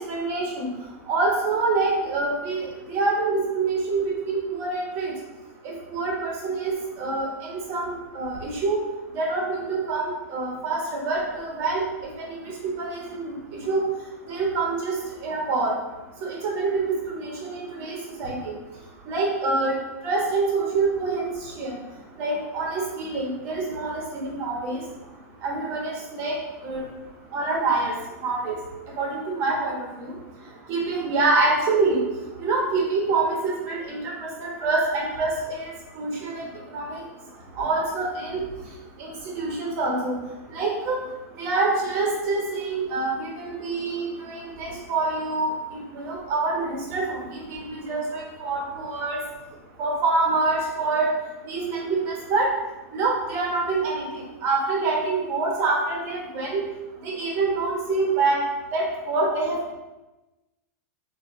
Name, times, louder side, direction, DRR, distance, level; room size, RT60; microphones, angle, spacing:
voice 1, 0.1-0.7 1.1-2.6 2.9-5.1 5.6-8.8 9.1-11.8 12.4-13.8 14.3-15.0 15.2-15.7 16.2-18.5 19.1-19.7 20.0-21.8 22.2-24.8 25.4-26.3 26.6-26.8 27.3-27.9 28.2-28.6 29.0-30.1 30.7-32.0 32.4-36.4 36.7-37.0 37.5-38.4 39.0-40.1 40.5-41.0 41.4-45.5 45.9-49.2 49.8-51.1 51.5-52.5 52.9-56.6 57.0-58.4 58.7-59.7, right 3 dB, 30° right, -2 dB, 1.1 m, -26 dB
5.8 x 2.8 x 2.6 m, 1.1 s
supercardioid pair, 160°, 8 cm